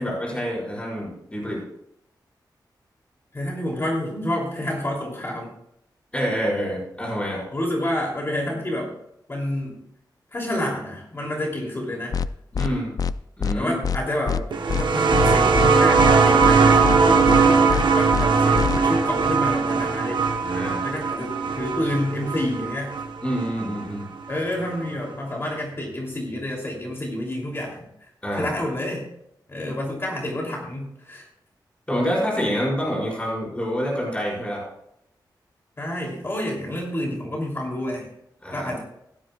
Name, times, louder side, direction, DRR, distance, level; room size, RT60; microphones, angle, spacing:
voice 1, 0.0-1.6 6.1-7.4 12.5-12.9 13.4-13.7 20.4-20.8 23.2-24.1 28.2-28.5 31.9-34.6 38.4-38.7, equal, 15° left, -5 dB, 5.3 m, -27 dB
voice 2, 3.3-5.5 7.5-8.9 9.3-9.8 10.3-12.2 13.5-14.5 14.8-20.5 20.8-22.9 24.3-29.0 29.5-31.3 35.8-38.1 38.5-38.8, left 1 dB, 30° left, -2 dB, 3.0 m, -28 dB
sound 1, 12.1-12.3 12.5-12.7 13.0-13.1 13.4-13.6 13.8-14.0 14.3-14.4 14.7-14.8 15.1-15.7 16.0-16.1 16.4-16.6 16.8-17.0 17.3-17.4 17.7-17.8 18.1-18.3 18.5-18.8, left 7 dB, 50° left, 0.4 m, -24 dB
sound 2, 14.5-23.8 24.9-25.0, right 5 dB, 85° right, 1.1 m, -19 dB
16.5 x 12.5 x 2.4 m, 0.76 s
wide cardioid pair, 150°, 8 cm